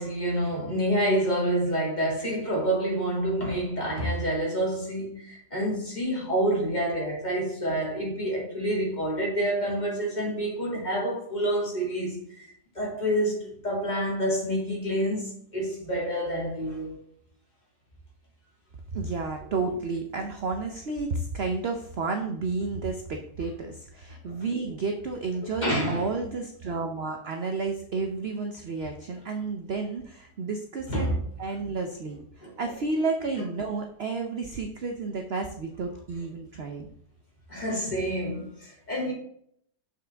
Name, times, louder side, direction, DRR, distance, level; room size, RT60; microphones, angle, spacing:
voice 1, 0.0-12.5 12.7-17.0 24.3-24.4 25.6-26.0 30.9-31.2 32.4-32.5 37.5-39.1, right 1 dB, 25° left, 2.7 m, -28 dB
voice 2, 18.9-31.1 31.4-36.9, right 4 dB, 55° right, 0.7 m, -31 dB
6.9 x 6.1 x 3.5 m
omnidirectional pair, 1.9 m